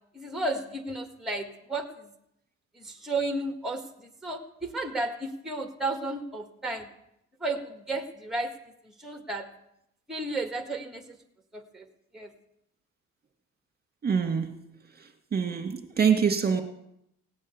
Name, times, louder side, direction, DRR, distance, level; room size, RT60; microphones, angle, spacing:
voice 1, 0.1-2.1 2.8-6.9 7.4-8.5 8.8-9.5 10.1-11.2 11.5-11.8 12.1-12.3, right 2 dB, ahead, 3 dB, 1.6 m, -33 dB
voice 2, 14.0-14.6 15.3-16.6, right 6 dB, 30° right, 5 dB, 2.0 m, -25 dB
17.0 x 6.4 x 9.4 m, 0.79 s
cardioid pair, 90°, 30 cm